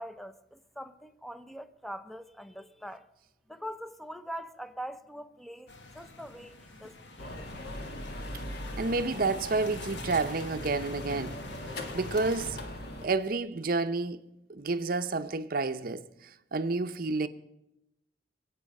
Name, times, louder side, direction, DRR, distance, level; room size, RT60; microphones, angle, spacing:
voice 1, 0.0-3.1 3.5-7.5, equal, ahead, 0.6 m, -43 dB
sound 1, 5.7-12.5, left 2 dB, 75° left, 1.4 m, -46 dB
sound 2, 7.2-13.1, left 1 dB, 60° left, 1.6 m, -40 dB
voice 2, 8.8-11.4 11.9-12.6 13.0-14.2 14.5-17.3, right 3 dB, 55° right, 0.7 m, -30 dB
23.5 x 8.4 x 5.4 m
head